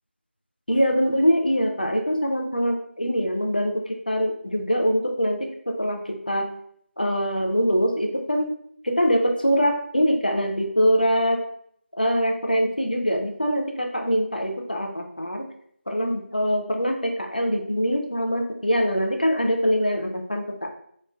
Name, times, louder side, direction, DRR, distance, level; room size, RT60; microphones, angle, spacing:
voice 1, 0.7-5.5 5.8-6.5 7.0-8.5 8.8-11.4 12.0-15.5 15.9-20.7, equal, 45° left, 2 dB, 0.4 m, -23 dB
2.9 x 2.2 x 2.3 m, 0.66 s
figure-of-eight pair, 180°, 7 cm